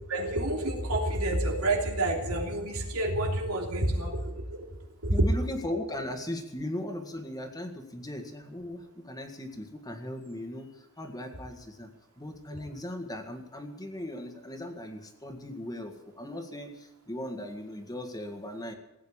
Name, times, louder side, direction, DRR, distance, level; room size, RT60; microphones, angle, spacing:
voice 1, 0.1-4.7 5.0-5.1, right 1 dB, 85° right, 1 dB, 3.2 m, -29 dB
voice 2, 5.1-11.9 12.2-18.7, left 1 dB, 20° left, 5 dB, 1.8 m, -38 dB
17.0 x 9.3 x 8.8 m, 0.94 s
head